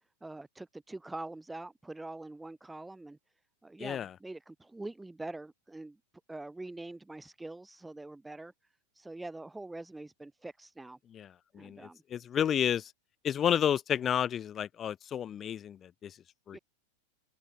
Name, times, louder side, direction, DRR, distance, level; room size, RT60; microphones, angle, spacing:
voice 1, 0.2-3.2 3.6-6.0 6.3-8.5 9.0-11.0 11.5-12.0 16.5-16.6, right 2 dB, 5° right, 1.7 m, -44 dB
voice 2, 3.8-4.1 11.1-12.9 13.2-16.1 16.5-16.6, left 9 dB, 25° left, 0.3 m, -31 dB
open air
figure-of-eight pair, 90°, 0 cm